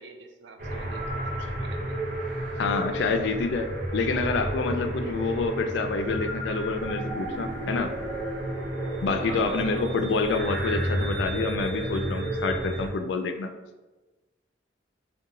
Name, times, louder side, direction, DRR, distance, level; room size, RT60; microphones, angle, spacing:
voice 1, 0.0-2.0 9.3-9.9, right 3 dB, 70° right, 6 dB, 0.4 m, -43 dB
sound 1, 0.6-12.9, right 1 dB, 50° right, 0.7 m, -31 dB
voice 2, 2.6-3.7 3.9-7.9 9.0-13.5, left 4 dB, 75° left, 7 dB, 0.3 m, -27 dB
2.9 x 2.2 x 3.7 m, 1.2 s
head